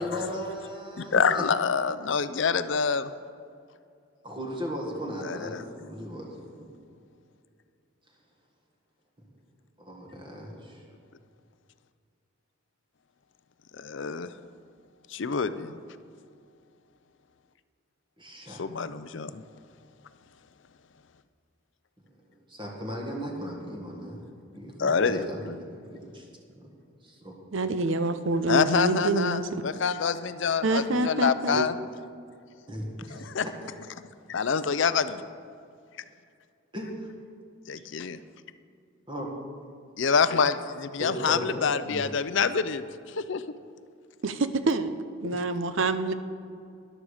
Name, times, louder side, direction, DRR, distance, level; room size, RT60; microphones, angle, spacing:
voice 1, 0.0-1.5 4.2-6.7 9.8-10.8 18.2-18.6 22.5-24.2 24.5-26.3 26.5-26.7 27.0-27.4 32.7-33.7 36.7-37.1 39.1-39.3 41.0-42.1, equal, 20° right, -1 dB, 1.7 m, -37 dB
voice 2, 1.0-3.1 5.2-5.6 13.7-14.3 15.1-15.8 18.5-19.4 24.8-25.6 28.5-31.7 33.1-33.5 34.3-35.2 37.7-38.2 40.0-42.9 43.2-43.4, left 5 dB, 60° left, 13 dB, 0.5 m, -26 dB
voice 3, 27.5-29.6 30.6-31.7 44.2-44.9 45.2-46.1, right 2 dB, 65° right, 11 dB, 0.7 m, -26 dB
13.5 x 11.0 x 5.0 m, 2.4 s
head